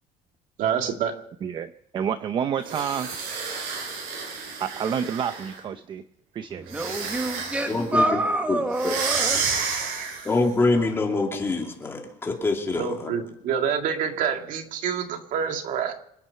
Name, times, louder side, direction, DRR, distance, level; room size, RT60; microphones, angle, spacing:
voice 1, 0.6-1.1 12.7-15.9, right 7 dB, 65° right, 5 dB, 2.1 m, -27 dB
voice 2, 1.4-3.1 4.6-6.0 6.3-6.6, right 8 dB, 35° right, 10 dB, 0.6 m, -29 dB
sound 1, 2.6-5.6 6.7-7.8 8.7-10.4, right 5 dB, 85° right, 7.8 m, -30 dB
voice 3, 6.5-9.6, right 1 dB, 10° right, 4 dB, 1.4 m, -27 dB
voice 4, 7.7-8.2 8.5-9.0 10.2-13.1, left 3 dB, 15° left, 1 dB, 2.7 m, -25 dB
27.0 x 9.5 x 5.6 m, 0.76 s
cardioid pair, 175°, 15 cm